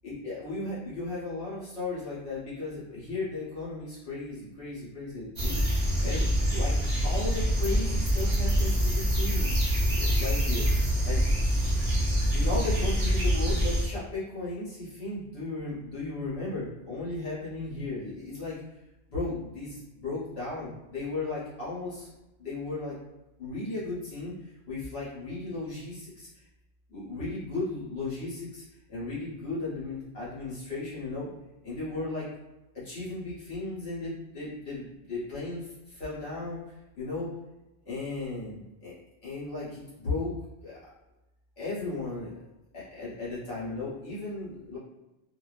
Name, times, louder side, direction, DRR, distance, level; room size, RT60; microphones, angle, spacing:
voice 1, 0.0-6.8 7.0-10.7 11.0-11.2 12.3-18.6 19.1-22.1 22.4-22.9 23.4-26.4 26.9-28.6 28.9-31.3 31.6-32.3 32.7-37.3 37.9-38.9 39.2-40.3 40.6-40.8 41.6-42.4 42.7-44.8, left 3 dB, 60° left, -9 dB, 1.1 m, -35 dB
sound 1, 5.4-13.8, equal, 40° right, 0.7 m, -25 dB
2.5 x 2.2 x 2.3 m, 0.99 s
omnidirectional pair, 1.3 m